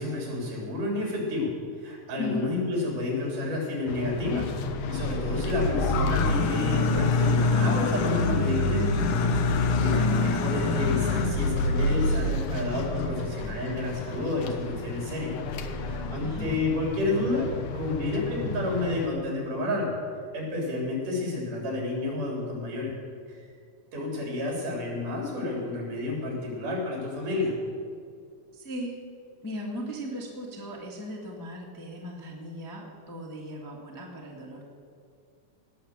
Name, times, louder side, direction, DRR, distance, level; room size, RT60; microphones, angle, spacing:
voice 1, 0.0-1.5 1.8-4.5 4.9-9.0 9.8-15.3 15.7-17.5 17.7-20.0 20.3-22.9 23.3-23.4 23.9-27.5, left 2 dB, 75° right, -2 dB, 4.9 m, -30 dB
voice 2, 2.2-2.5 16.2-16.5 28.5-28.9 29.4-34.6, equal, 10° left, -2 dB, 1.0 m, -37 dB
sound 1, 3.9-19.1, left 3 dB, 75° left, 2.4 m, -27 dB
18.0 x 6.8 x 7.4 m, 2.3 s
omnidirectional pair, 3.7 m